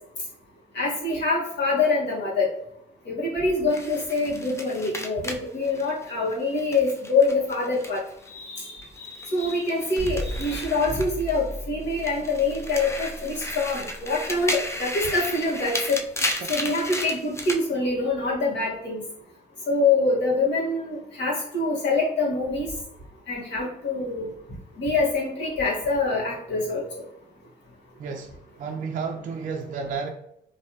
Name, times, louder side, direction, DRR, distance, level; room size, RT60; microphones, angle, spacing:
voice 1, 0.7-2.5 3.1-8.0 8.3-16.0 16.5-19.0 19.7-22.7 23.3-24.3 24.8-26.8, left 3 dB, 60° left, -5 dB, 1.5 m, -25 dB
sound 1, 3.7-8.3 8.6-11.6 11.9-17.6, left 1 dB, 15° left, 0.5 m, -34 dB
sound 2, 10.0-16.1, equal, 35° left, 1.3 m, -37 dB
voice 2, 28.0-30.1, right 5 dB, 40° right, 2 dB, 0.4 m, -32 dB
3.1 x 2.7 x 2.8 m, 0.76 s
cardioid pair, 90°, 20 cm